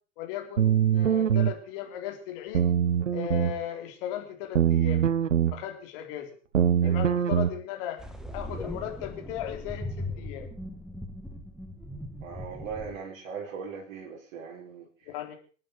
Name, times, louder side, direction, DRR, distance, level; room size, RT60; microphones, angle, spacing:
voice 1, 0.2-2.7 3.1-5.0 5.5-6.3 6.8-8.0 8.3-10.5 15.1-15.4, left 11 dB, 45° left, 4 dB, 3.9 m, -37 dB
sound 1, 0.6-1.5 2.5-3.6 4.5-5.5 6.5-7.5, right 9 dB, 70° right, 1.2 m, -23 dB
sound 2, 8.0-13.0, left 1 dB, ahead, 1.9 m, -39 dB
voice 2, 12.2-15.1, right 6 dB, 45° right, -3 dB, 3.7 m, -39 dB
27.0 x 9.2 x 4.6 m, 0.40 s
figure-of-eight pair, 100°, 39 cm